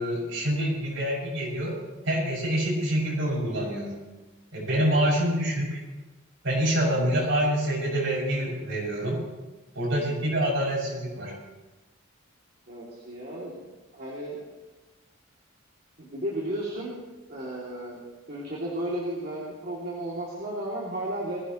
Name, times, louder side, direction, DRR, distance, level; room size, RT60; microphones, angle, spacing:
voice 1, 0.0-1.8 2.0-3.9 4.5-5.8 6.4-9.2 9.7-11.3, right 1 dB, 65° right, -3 dB, 6.6 m, -26 dB
voice 2, 12.7-13.6 13.9-14.4 16.0-17.0 17.3-18.0 18.3-21.4, right 1 dB, 50° right, -6 dB, 2.7 m, -33 dB
21.0 x 15.5 x 3.1 m, 1.2 s
head